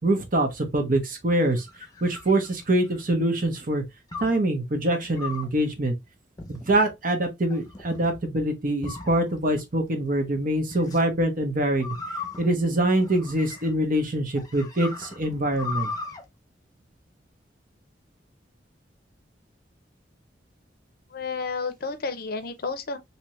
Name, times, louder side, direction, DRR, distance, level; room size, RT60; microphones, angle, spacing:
voice 1, 0.0-1.7 2.0-3.8 4.2-5.9 6.5-11.9 12.4-15.9, right 1 dB, 50° right, 0.9 m, -24 dB
sound 1, 1.3-3.1 4.1-4.4 5.1-5.6 6.4-6.9 7.5-8.1 8.8-9.6 10.7-11.0 11.8-13.9 14.3-16.2, left 3 dB, 20° left, 0.8 m, -38 dB
voice 2, 21.1-23.0, left 4 dB, 55° left, 0.6 m, -31 dB
3.4 x 2.8 x 3.0 m
head